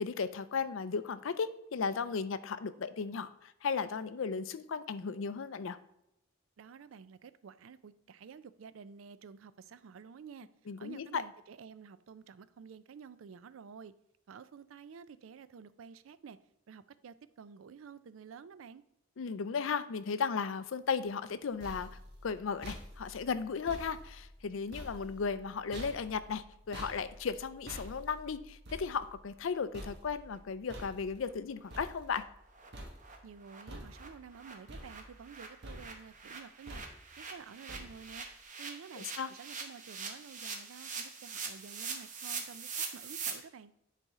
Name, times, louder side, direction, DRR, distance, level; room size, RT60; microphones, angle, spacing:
voice 1, 0.0-5.8 10.7-11.2 19.2-21.9 22.2-32.2 39.0-39.3, left 5 dB, 70° left, 0.5 m, -35 dB
voice 2, 6.6-10.5 10.8-13.9 14.3-16.4 16.7-18.8 33.2-36.8 37.2-38.3 38.6-43.7, right 6 dB, 75° right, 0.4 m, -51 dB
sound 1, 21.2-32.5 32.7-33.3 33.7-34.3 34.7-35.4 35.6-36.1 36.7-37.2 37.7-38.2, equal, 55° right, 1.4 m, -49 dB
sound 2, 30.3-30.4 30.8-30.9 31.2-31.3 31.7-31.8 32.1-32.2 32.5-32.7 33.0-33.2 33.4-43.3, right 5 dB, 40° right, 1.0 m, -43 dB
10.0 x 4.2 x 3.6 m
head